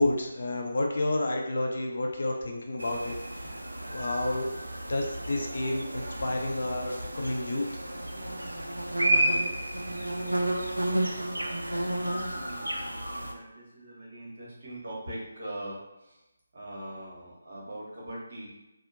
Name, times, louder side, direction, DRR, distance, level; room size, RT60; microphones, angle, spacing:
voice 1, 0.0-3.6 3.9-4.5 4.9-7.7, left 2 dB, 55° left, 1 dB, 0.5 m, -30 dB
sound 1, 2.8-13.3, right 1 dB, 80° right, 0.3 m, -31 dB
voice 2, 9.2-11.5 12.0-16.2 16.5-18.5, right 1 dB, 50° right, -5 dB, 1.2 m, -43 dB
2.8 x 2.0 x 2.6 m, 0.96 s
figure-of-eight pair, 150°, 0 cm